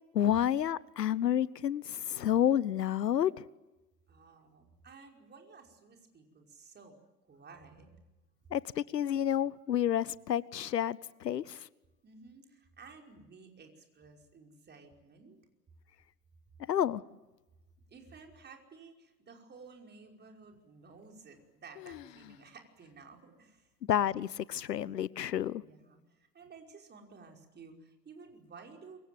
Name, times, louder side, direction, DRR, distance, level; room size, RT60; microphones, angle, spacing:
voice 1, 0.1-3.3 8.5-11.7 16.7-17.0 23.9-25.6, left 10 dB, 75° left, 22 dB, 0.9 m, -30 dB
voice 2, 4.1-7.0 7.3-7.9 12.0-15.4 17.9-23.7 25.5-29.0, right 4 dB, 20° right, 3 dB, 5.3 m, -54 dB
sound 1, 21.0-21.5 21.7-22.5 22.8-22.9 23.6-23.7 24.4-24.8, left 15 dB, 50° left, 1.7 m, -51 dB
27.5 x 24.5 x 7.8 m, 1.1 s
figure-of-eight pair, 95°, 49 cm